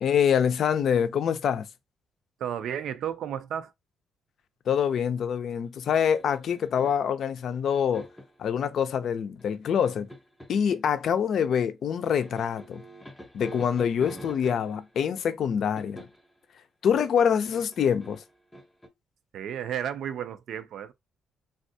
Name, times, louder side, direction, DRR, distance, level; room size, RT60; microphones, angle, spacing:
voice 1, 0.0-1.7 4.7-8.1 8.4-10.1 10.5-12.8 13.3-16.1 16.8-18.2, left 8 dB, 65° left, 0.4 m, -25 dB
voice 2, 2.4-3.7 19.3-20.9, right 9 dB, 75° right, 0.4 m, -33 dB
sound 1, 6.1-7.1 7.7-8.4 9.4-10.6 12.2-14.9 15.8-16.3 17.4-18.9, equal, 10° left, 0.8 m, -45 dB
3.4 x 2.4 x 2.6 m
cardioid pair, 90°, 0 cm